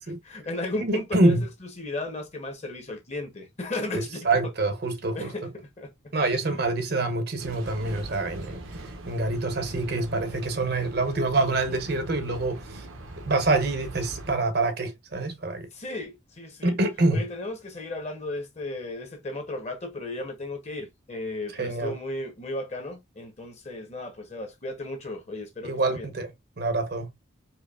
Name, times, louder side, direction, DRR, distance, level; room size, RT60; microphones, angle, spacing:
voice 1, 0.2-1.4 1.8-4.3 5.1-5.5 5.8-5.9 15.7-16.8 17.1-26.1, left 2 dB, 35° left, 1.0 m, -35 dB
voice 2, 0.8-1.4 3.9-5.3 6.1-12.9 13.2-15.7 16.6-17.2 21.5-22.0 25.6-27.1, right 2 dB, 50° right, 0.7 m, -26 dB
sound 1, 7.4-14.3, right 1 dB, 85° right, 0.9 m, -41 dB
4.5 x 2.8 x 2.4 m
head